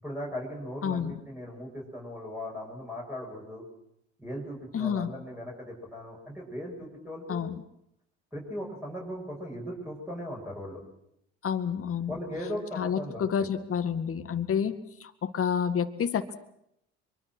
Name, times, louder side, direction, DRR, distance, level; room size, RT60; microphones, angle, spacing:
voice 1, 0.0-3.6 4.2-7.4 8.3-10.8 12.1-13.5, equal, 5° right, -4 dB, 7.8 m, -38 dB
voice 2, 0.8-1.1 4.7-5.1 7.3-7.6 11.4-12.1 12.7-14.8 15.0-16.3, left 7 dB, 40° left, 9 dB, 2.1 m, -29 dB
24.0 x 23.5 x 6.3 m, 0.77 s
supercardioid pair, 80°, 34 cm